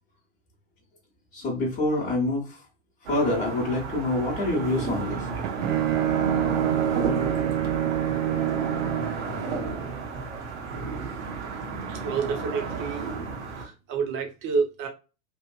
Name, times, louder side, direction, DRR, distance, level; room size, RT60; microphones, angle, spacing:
voice 1, 1.3-2.6 3.0-5.3, left 2 dB, 20° left, -5 dB, 1.0 m, -26 dB
sound 1, 3.0-13.6, right 4 dB, 55° right, 1.0 m, -32 dB
Bowed string instrument, 5.1-9.3, right 12 dB, 70° right, 0.5 m, -26 dB
voice 2, 11.9-13.1 13.6-14.9, right 5 dB, 30° right, 3 dB, 0.8 m, -29 dB
2.9 x 2.5 x 2.2 m, 0.32 s
figure-of-eight pair, 100°, 40 cm